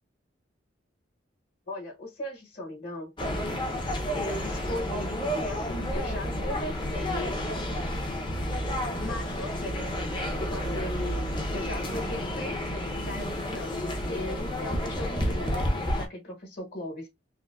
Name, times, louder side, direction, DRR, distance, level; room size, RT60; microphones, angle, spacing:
voice 1, 1.7-3.1 4.1-7.6 9.0-10.0 10.4-13.8 14.1-17.1, left 1 dB, 50° left, 1.2 m, -38 dB
sound 1, 3.2-16.1, equal, 25° left, 0.6 m, -30 dB
3.5 x 2.1 x 2.3 m
head